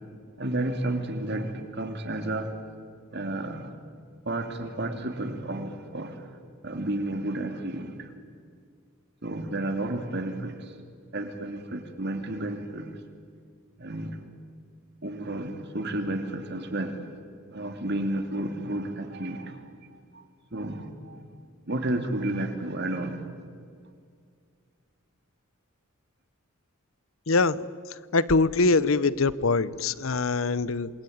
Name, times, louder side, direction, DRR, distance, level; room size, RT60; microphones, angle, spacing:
voice 1, 0.4-2.5 3.1-3.8 4.2-6.3 6.6-8.1 9.2-10.7 11.1-12.9 13.8-14.2 15.0-17.1 17.5-19.6 19.9-20.2 20.5-21.2 21.7-23.2, right 1 dB, 50° right, 6 dB, 2.8 m, -32 dB
voice 2, 27.3-27.6 28.1-30.9, left 3 dB, 70° left, 18 dB, 0.8 m, -23 dB
27.5 x 21.5 x 9.5 m, 2.2 s
head